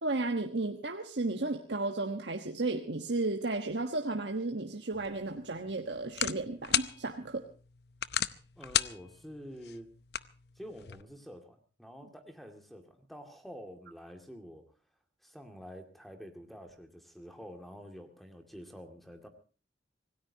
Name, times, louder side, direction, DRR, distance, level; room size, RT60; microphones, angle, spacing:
voice 1, 0.0-7.4, right 2 dB, 80° right, 4 dB, 1.4 m, -33 dB
sound 1, 4.9-11.0, left 10 dB, 65° left, 0.7 m, -36 dB
voice 2, 8.6-9.9 10.6-14.6 15.2-19.3, equal, ahead, 5 dB, 2.2 m, -48 dB
26.0 x 18.0 x 2.8 m, 0.38 s
head